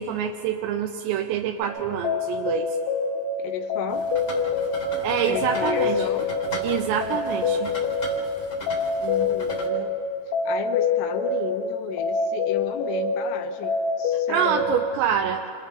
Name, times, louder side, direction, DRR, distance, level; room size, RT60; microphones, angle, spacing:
voice 1, 0.0-2.8 5.0-6.0 6.6-7.7 14.3-15.4, right 9 dB, 80° right, 4 dB, 2.7 m, -26 dB
sound 1, 1.6-14.9, left 3 dB, 70° left, 2.9 m, -26 dB
voice 2, 3.4-4.1 5.2-6.3 7.1-7.6 9.0-10.0 10.4-14.7, left 8 dB, 90° left, 5 dB, 3.7 m, -33 dB
sound 2, 3.9-9.7, left 1 dB, 35° left, 1.2 m, -38 dB
28.0 x 26.0 x 3.8 m, 2.7 s
omnidirectional pair, 5.7 m